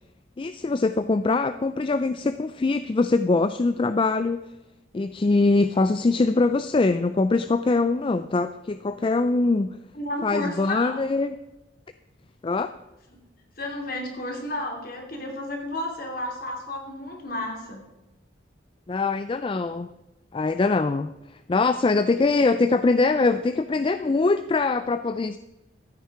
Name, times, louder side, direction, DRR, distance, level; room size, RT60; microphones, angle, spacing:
voice 1, 0.4-4.4 4.9-9.7 10.2-11.3 12.4-12.7 18.9-19.9 20.3-21.1 21.5-25.4, left 3 dB, 25° left, 11 dB, 0.3 m, -23 dB
voice 2, 9.9-11.0 13.6-17.8, left 1 dB, 50° left, 1 dB, 2.8 m, -32 dB
14.0 x 9.3 x 4.8 m, 1.0 s
head